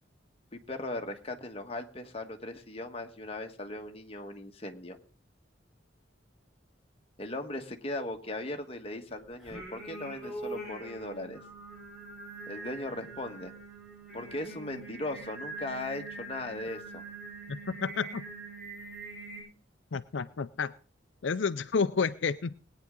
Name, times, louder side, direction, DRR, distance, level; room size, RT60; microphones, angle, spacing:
voice 1, 0.5-5.0 7.2-11.4 12.5-13.5 14.1-17.0, left 2 dB, 30° left, 4 dB, 1.5 m, -38 dB
Singing, 9.4-19.4, right 2 dB, ahead, 6.9 m, -43 dB
voice 2, 17.5-18.2 19.9-20.7 21.2-22.6, left 5 dB, 80° left, 12 dB, 0.5 m, -30 dB
20.0 x 9.5 x 3.8 m, 0.38 s
head